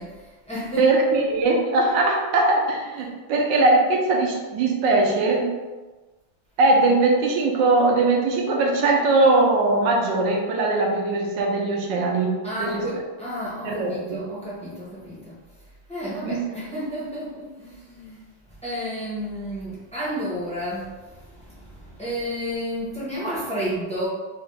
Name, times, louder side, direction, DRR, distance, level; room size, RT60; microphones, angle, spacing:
voice 1, 0.0-1.3 12.4-15.4 15.9-24.1, equal, 5° left, -9 dB, 0.6 m, -32 dB
voice 2, 0.8-5.5 6.6-12.8 13.6-14.3 16.2-16.4, right 2 dB, 75° right, 0 dB, 1.2 m, -20 dB
4.0 x 2.3 x 3.2 m, 1.2 s
omnidirectional pair, 2.2 m